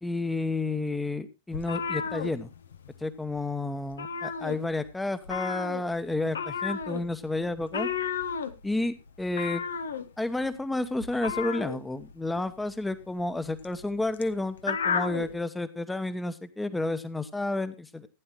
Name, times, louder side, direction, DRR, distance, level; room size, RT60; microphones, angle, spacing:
voice 1, 0.0-2.5 3.0-7.9 8.6-9.6 10.2-18.1, left 2 dB, 5° left, 12 dB, 1.0 m, -31 dB
Meows-Annoyed, 1.5-3.0 3.3-3.5 3.8-4.9 5.2-15.3, left 6 dB, 70° left, 0.9 m, -33 dB
15.5 x 10.0 x 3.1 m, 0.26 s
figure-of-eight pair, 90°, 0 cm